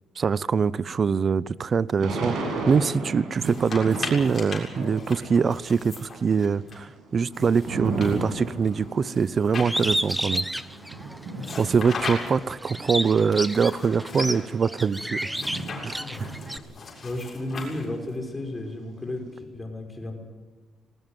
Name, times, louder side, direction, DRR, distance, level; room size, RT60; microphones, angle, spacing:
voice 1, 0.2-2.4 2.7-10.4 11.6-15.2 15.8-16.0, right 6 dB, 45° right, 20 dB, 0.7 m, -23 dB
Thunder / Rain, 2.0-5.6 5.9-13.0 13.6-13.7 13.9-17.1 17.4-19.2, right 2 dB, 70° right, 7.1 m, -36 dB
sound 1, 3.3-6.8 7.3-10.2 11.4-12.5 13.3-14.4 15.3-18.1, left 4 dB, 40° left, 7.2 m, -38 dB
Bird, 9.6-11.6 12.1-16.6, equal, 5° right, 1.1 m, -30 dB
voice 2, 16.0-16.3 17.0-20.1, left 1 dB, 20° left, 3 dB, 5.5 m, -33 dB
19.5 x 19.0 x 9.2 m, 1.3 s
cardioid pair, 90°, 0 cm